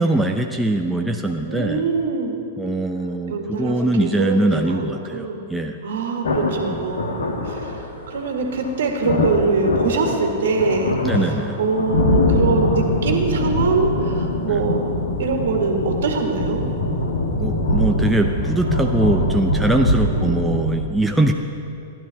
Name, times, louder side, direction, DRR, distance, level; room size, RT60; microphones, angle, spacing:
voice 1, 0.0-1.8 2.6-5.8 6.6-6.9 11.0-11.6 14.5-14.6 17.4-21.3, right 1 dB, 5° right, 3 dB, 0.7 m, -22 dB
voice 2, 1.5-2.4 3.3-5.5 5.8-11.0 11.6-14.8 15.2-16.7 20.1-20.4, right 3 dB, 60° right, 3 dB, 1.9 m, -23 dB
sound 1, 6.2-20.7, left 1 dB, 65° left, 1.6 m, -23 dB
15.0 x 11.0 x 5.8 m, 2.6 s
figure-of-eight pair, 100°, 0 cm